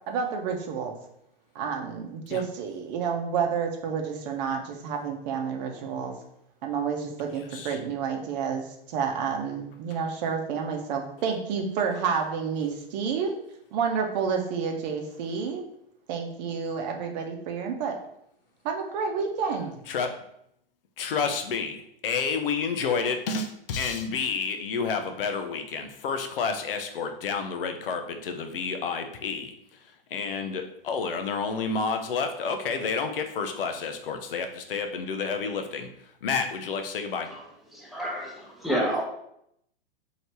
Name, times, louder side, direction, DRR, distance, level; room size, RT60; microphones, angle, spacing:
voice 1, 0.1-0.9 1.5-6.2 6.6-13.3 13.7-15.6 16.1-18.0 18.6-19.7, right 6 dB, 50° right, 3 dB, 0.8 m, -29 dB
voice 2, 21.0-21.8 22.0-29.5 30.1-35.9 36.2-37.3, left 5 dB, 70° left, 6 dB, 0.7 m, -29 dB
voice 3, 37.8-39.0, equal, ahead, -3 dB, 0.9 m, -28 dB
3.2 x 2.9 x 4.2 m, 0.74 s
hypercardioid pair, 105°, 29 cm